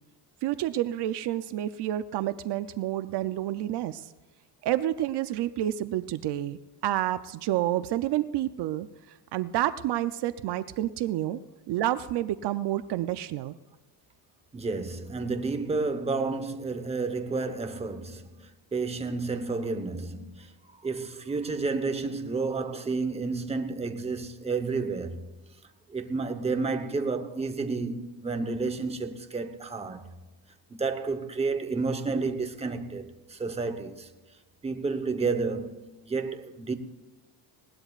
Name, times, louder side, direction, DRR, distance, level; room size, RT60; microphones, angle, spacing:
voice 1, 0.4-4.1 4.6-8.9 9.3-11.4 11.7-13.5, right 13 dB, 65° right, 0.6 m, -29 dB
voice 2, 14.5-25.2 25.9-30.1 30.7-34.1 34.6-36.7, right 4 dB, 15° right, 1.0 m, -31 dB
20.5 x 18.5 x 2.4 m
cardioid pair, 145°, 44 cm